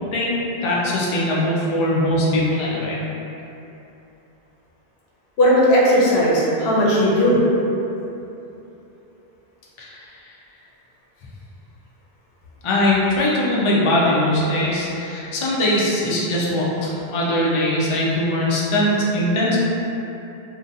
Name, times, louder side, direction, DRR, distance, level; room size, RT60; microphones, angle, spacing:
voice 1, 0.6-3.0 9.8-10.0 12.6-19.6, left 1 dB, 50° left, -6 dB, 0.3 m, -21 dB
voice 2, 5.4-7.4, equal, 90° left, -5 dB, 0.9 m, -16 dB
2.5 x 2.2 x 2.6 m, 2.9 s
omnidirectional pair, 1.0 m